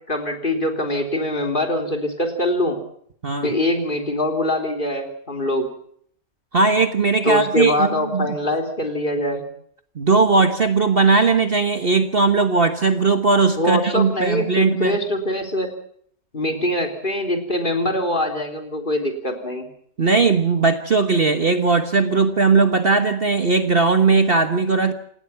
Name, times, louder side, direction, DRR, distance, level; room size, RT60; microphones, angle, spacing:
voice 1, 0.1-2.8 3.4-5.7 7.2-9.5 13.6-15.7 16.3-19.7, left 1 dB, 35° left, 4 dB, 3.9 m, -23 dB
voice 2, 3.2-3.5 6.5-8.3 9.9-15.0 20.0-24.9, right 4 dB, 40° right, 8 dB, 1.5 m, -18 dB
27.5 x 18.5 x 5.9 m, 0.64 s
omnidirectional pair, 1.6 m